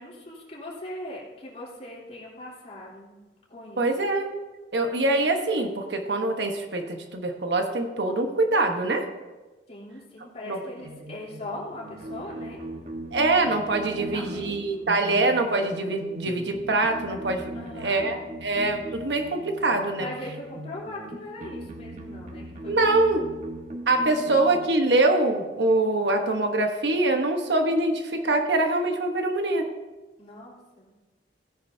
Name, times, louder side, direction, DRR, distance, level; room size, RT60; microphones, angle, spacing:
voice 1, 0.0-3.2 3.5-3.9 9.7-12.6 13.8-14.9 17.5-18.1 20.0-23.4 24.0-24.5 30.2-30.9, left 1 dB, 40° left, -5 dB, 3.5 m, -40 dB
voice 2, 3.8-4.3 4.7-9.1 10.5-10.6 13.1-20.1 22.7-23.2 23.9-29.7, right 2 dB, 70° right, 4 dB, 1.2 m, -24 dB
sound 1, 10.8-24.8, right 1 dB, 45° right, 1.4 m, -39 dB
16.5 x 10.0 x 2.8 m, 1.2 s
head